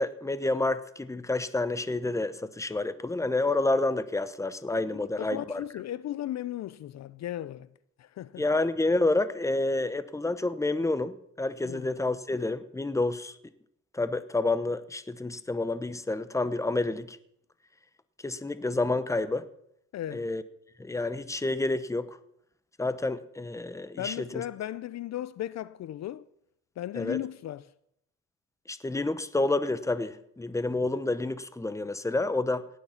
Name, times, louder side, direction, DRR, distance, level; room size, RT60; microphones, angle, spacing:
voice 1, 0.0-5.6 8.4-13.3 13.9-17.2 18.2-19.4 20.1-20.4 20.8-22.1 22.8-24.1 27.0-27.2 28.7-32.7, left 2 dB, 10° left, 0.9 m, -29 dB
voice 2, 4.9-7.7 8.0-8.4 11.6-12.0 19.9-20.2 24.0-26.3 26.8-27.7, left 12 dB, 60° left, 0.6 m, -36 dB
17.5 x 9.5 x 5.8 m
cardioid pair, 90°, 30 cm